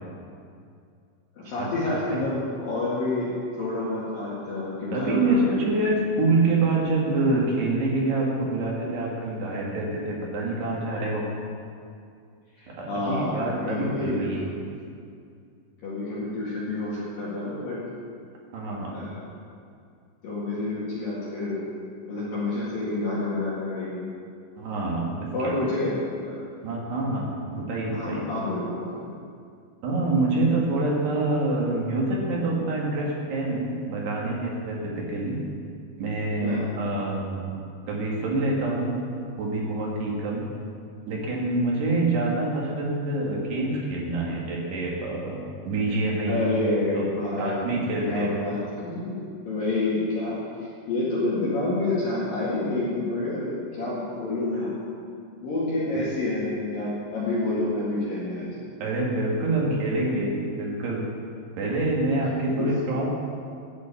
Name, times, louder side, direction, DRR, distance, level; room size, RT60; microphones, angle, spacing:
voice 1, 1.4-3.3 3.6-5.7 12.6-14.2 15.8-17.8 18.9-19.1 20.2-21.6 22.1-24.0 25.3-25.9 26.2-26.4 27.9-29.0 36.4-36.7 46.3-50.4 50.9-54.7 55.4-58.6 62.6-62.7, left 2 dB, 55° left, -8 dB, 3.3 m, -28 dB
voice 2, 4.9-11.2 12.7-14.4 18.5-18.9 24.6-25.1 25.5-25.6 26.6-28.2 29.8-35.4 36.0-37.5 37.9-38.9 39.4-40.4 41.1-46.3 47.0-47.1 47.4-48.4 55.9-56.0 58.8-61.0 61.5-63.1, right 2 dB, 60° right, -3 dB, 3.9 m, -26 dB
11.5 x 8.5 x 8.5 m, 2.3 s
omnidirectional pair, 5.8 m